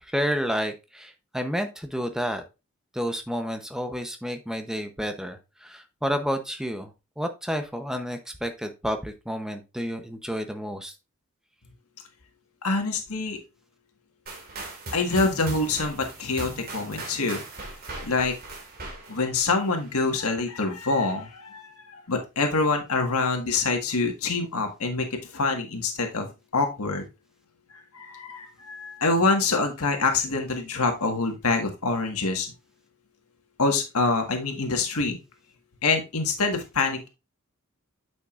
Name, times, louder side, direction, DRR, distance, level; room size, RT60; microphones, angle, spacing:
voice 1, 0.1-2.4 2.9-10.9, equal, ahead, 7 dB, 0.7 m, -30 dB
voice 2, 12.6-13.4 14.9-17.4 18.0-18.3 19.1-27.0 27.9-32.5 33.6-35.2 35.8-37.1, left 3 dB, 85° left, 4 dB, 1.6 m, -26 dB
sound 1, 14.3-20.1, right 2 dB, 40° right, 2.2 m, -39 dB
8.8 x 6.2 x 2.5 m, 0.27 s
head